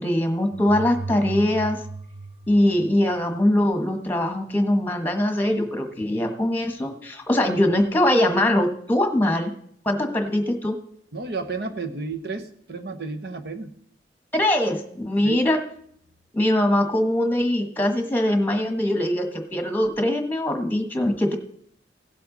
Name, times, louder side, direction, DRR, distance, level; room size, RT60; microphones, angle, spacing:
voice 1, 0.0-1.8 2.5-9.5 9.8-10.7 14.3-15.6 16.3-21.4, left 1 dB, 10° left, 6 dB, 1.2 m, -22 dB
sound 1, 0.5-3.4, right 3 dB, 30° right, 0.5 m, -36 dB
voice 2, 11.1-13.7 15.2-15.5, right 3 dB, 65° right, 7 dB, 1.1 m, -32 dB
16.5 x 7.8 x 3.9 m, 0.66 s
head